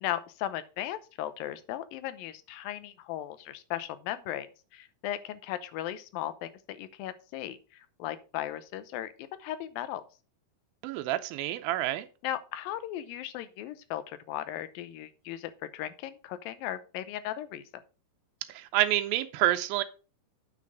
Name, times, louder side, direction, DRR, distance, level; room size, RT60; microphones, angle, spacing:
voice 1, 0.0-4.5 4.7-10.0 12.2-17.6, left 12 dB, 85° left, 2.5 m, -37 dB
voice 2, 10.8-12.1 18.5-19.8, right 14 dB, 90° right, 2.4 m, -28 dB
8.6 x 5.9 x 5.1 m
omnidirectional pair, 4.1 m